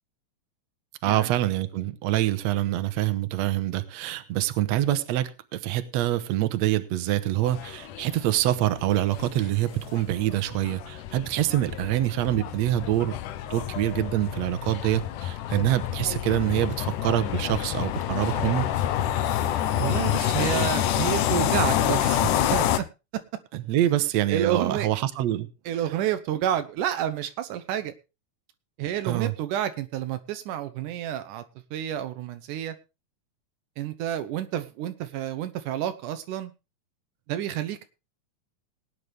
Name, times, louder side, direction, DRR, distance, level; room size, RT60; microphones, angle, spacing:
voice 1, 1.0-13.2 13.5-18.7 23.5-25.5 29.0-29.3, right 14 dB, 65° right, 10 dB, 2.1 m, -25 dB
sound 1, 7.5-22.8, left 11 dB, 80° left, 2.4 m, -28 dB
voice 2, 19.8-22.9 24.3-24.9 25.7-27.9 28.8-31.4 31.7-32.8 33.8-36.5 37.3-37.8, right 11 dB, 80° right, 10 dB, 2.3 m, -29 dB
19.0 x 9.6 x 3.4 m, 0.29 s
omnidirectional pair, 3.6 m